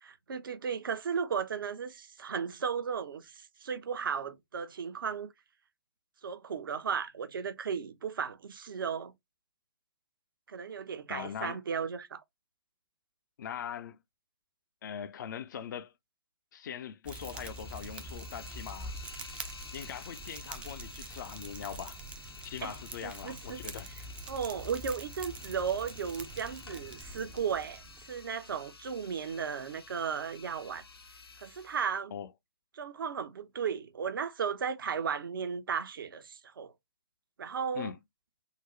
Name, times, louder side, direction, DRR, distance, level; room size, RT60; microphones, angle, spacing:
voice 1, 0.0-5.3 6.2-9.1 10.5-12.2 22.6-22.7 23.0-23.6 24.3-30.8 31.4-32.1 32.7-36.7 37.4-37.9, right 6 dB, 65° right, 0.7 m, -35 dB
voice 2, 11.1-11.6 13.4-14.0 14.8-15.9 16.5-18.9 19.7-22.0 22.4-23.9 32.1-32.3 37.7-38.0, left 8 dB, 55° left, 0.4 m, -41 dB
Fire, 17.0-28.2, right 2 dB, 10° right, 0.3 m, -45 dB
sound 1, 17.1-31.9, left 5 dB, 85° left, 0.7 m, -51 dB
3.8 x 2.0 x 2.8 m
figure-of-eight pair, 125°, 12 cm